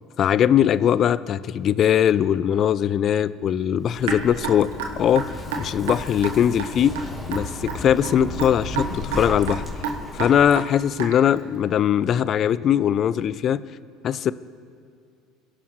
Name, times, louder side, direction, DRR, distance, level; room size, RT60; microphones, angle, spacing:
voice 1, 0.2-4.7 5.0-7.0 7.3-9.6 10.1-13.6 14.0-14.3, left 9 dB, 45° left, 17 dB, 0.5 m, -21 dB
Zipper (clothing), 3.8-10.5, left 2 dB, 10° left, 3.3 m, -34 dB
Raindrop / Drip, 4.0-11.4, right 5 dB, 75° right, 1.3 m, -30 dB
23.0 x 11.5 x 3.2 m, 2.4 s
hypercardioid pair, 70°, 0 cm